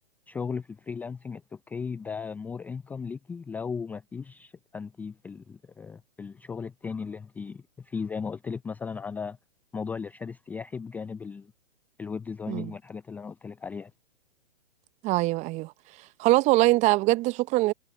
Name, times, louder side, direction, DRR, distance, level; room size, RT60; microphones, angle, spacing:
voice 1, 0.3-9.4 9.7-11.5 12.0-13.9, left 5 dB, 5° left, 0.5 m, -36 dB
voice 2, 15.0-15.7 16.2-17.7, right 19 dB, 20° right, 0.9 m, -22 dB
figure-of-eight pair, 125°, 32 cm